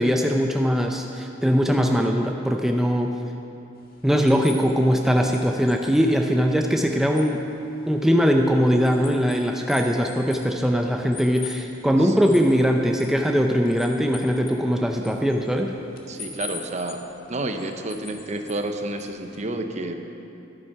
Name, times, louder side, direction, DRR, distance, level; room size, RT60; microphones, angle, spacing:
voice 1, 0.0-3.1 4.0-7.4 7.9-15.7, equal, ahead, 2 dB, 0.5 m, -21 dB
sound 1, 3.8-19.4, left 5 dB, 50° left, 1.5 m, -45 dB
voice 2, 16.1-17.0 17.3-19.9, right 2 dB, 40° right, 6 dB, 0.7 m, -30 dB
11.5 x 9.1 x 5.8 m, 2.8 s
head